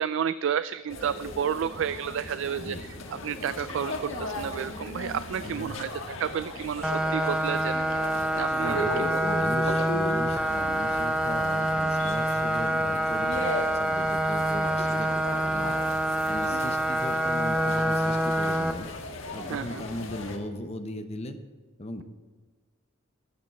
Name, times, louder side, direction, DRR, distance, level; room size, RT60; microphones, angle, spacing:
voice 1, 0.0-5.9 6.2-8.0 8.3-9.2 9.7-9.9 19.5-19.8, right 8 dB, 65° right, 14 dB, 0.3 m, -31 dB
sound 1, 0.9-20.4, left 1 dB, 70° left, 1.5 m, -37 dB
sound 2, 6.8-18.7, right 1 dB, 5° right, 0.7 m, -26 dB
voice 2, 8.5-18.9 19.3-21.4 21.8-22.0, left 1 dB, 30° left, 7 dB, 0.9 m, -38 dB
12.0 x 10.5 x 4.6 m, 1.4 s
head